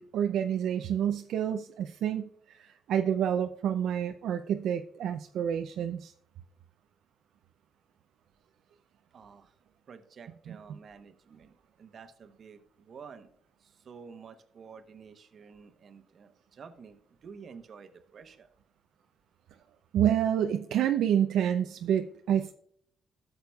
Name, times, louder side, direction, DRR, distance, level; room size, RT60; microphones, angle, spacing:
voice 1, 0.0-6.1 10.5-10.6 19.9-22.5, right 9 dB, 75° right, 6 dB, 0.4 m, -28 dB
voice 2, 9.1-9.5 9.9-13.3 13.6-18.5, right 6 dB, 55° right, 10 dB, 0.9 m, -50 dB
12.5 x 6.7 x 2.3 m, 0.67 s
cardioid pair, 90°, 0 cm